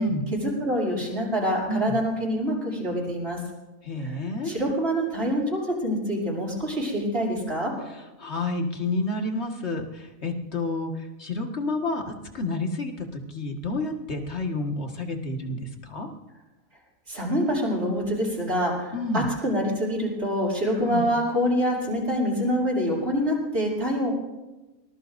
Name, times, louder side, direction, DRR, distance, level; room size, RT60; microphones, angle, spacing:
voice 1, 0.3-3.4 4.4-7.7 17.1-24.1, equal, 50° right, -5 dB, 6.9 m, -26 dB
voice 2, 3.8-4.6 8.2-16.1 18.9-19.3 20.8-21.1, left 2 dB, 50° left, 3 dB, 2.0 m, -29 dB
24.0 x 20.0 x 2.6 m, 1.1 s
omnidirectional pair, 1.5 m